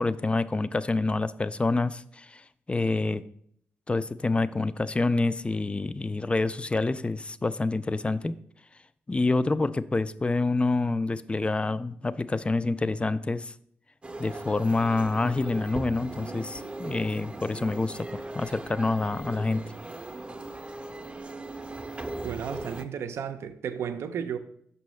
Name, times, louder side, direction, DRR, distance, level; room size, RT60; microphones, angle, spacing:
voice 1, 0.0-3.2 3.9-8.4 9.1-13.5 14.2-19.6, left 3 dB, 25° left, 0.4 m, -27 dB
sound 1, 14.0-22.8, right 2 dB, 25° right, 0.6 m, -39 dB
voice 2, 22.2-24.4, right 8 dB, 70° right, 0.4 m, -33 dB
6.0 x 5.6 x 3.1 m
supercardioid pair, 45°, 5 cm